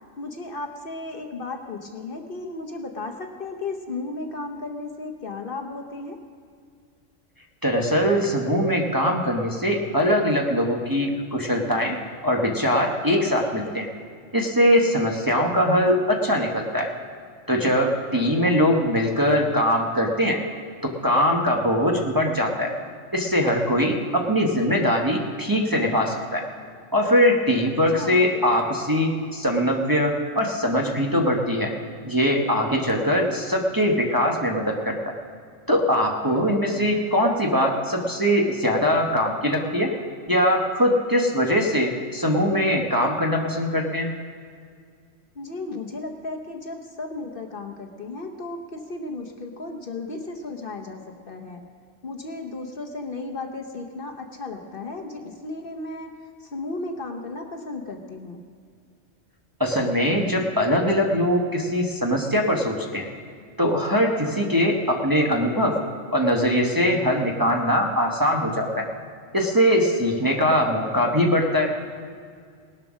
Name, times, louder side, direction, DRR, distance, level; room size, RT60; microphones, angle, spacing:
voice 1, 0.2-6.2 18.4-18.6 27.9-28.3 36.2-36.6 45.3-51.6 52.0-56.1 56.4-58.4 70.4-70.6, left 3 dB, 50° left, 3 dB, 1.1 m, -34 dB
voice 2, 7.6-12.0 12.2-13.9 14.3-16.9 17.5-20.4 20.8-22.7 23.1-26.4 26.9-31.7 32.0-35.1 35.7-39.9 40.3-44.1 59.6-63.1 63.6-65.8 66.1-68.8 69.3-71.7, equal, 20° right, -1 dB, 1.0 m, -22 dB
18.5 x 7.6 x 6.2 m, 2.1 s
omnidirectional pair, 1.3 m